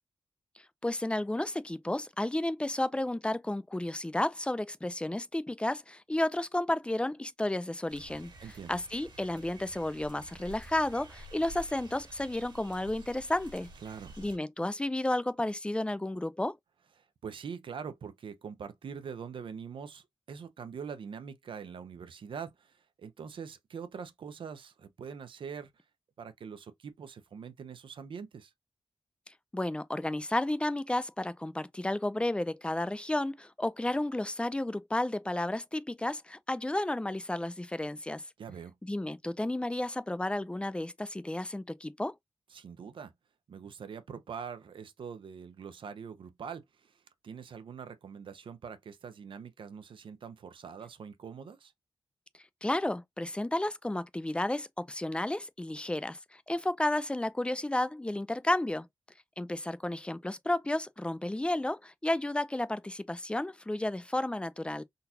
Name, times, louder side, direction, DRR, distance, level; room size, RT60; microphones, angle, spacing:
voice 1, 0.8-8.3 8.7-13.7 14.2-16.6 29.5-38.2 38.8-42.1 52.6-58.9 59.4-64.8, left 1 dB, 10° left, 0.4 m, -32 dB
sound 1, 7.9-14.4, right 3 dB, 60° right, 1.7 m, -50 dB
voice 2, 8.4-8.8 13.8-14.2 17.0-25.8 26.2-28.5 38.4-38.8 42.5-43.1 43.5-51.7, right 6 dB, 80° right, 0.6 m, -44 dB
3.9 x 2.3 x 2.6 m
cardioid pair, 75°, 9 cm